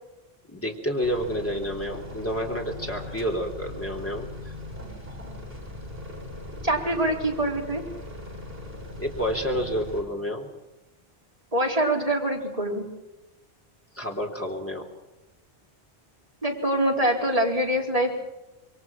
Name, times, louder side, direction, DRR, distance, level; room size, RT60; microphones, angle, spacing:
voice 1, 0.5-4.5 9.0-10.5 13.9-14.9, equal, 15° left, 1 dB, 3.7 m, -29 dB
sound 1, 1.0-10.0, left 1 dB, 65° right, 7.7 m, -39 dB
voice 2, 6.6-7.9 11.5-12.9 16.4-18.2, right 1 dB, 35° right, -1 dB, 4.6 m, -24 dB
27.5 x 23.0 x 6.0 m, 1.0 s
omnidirectional pair, 1.0 m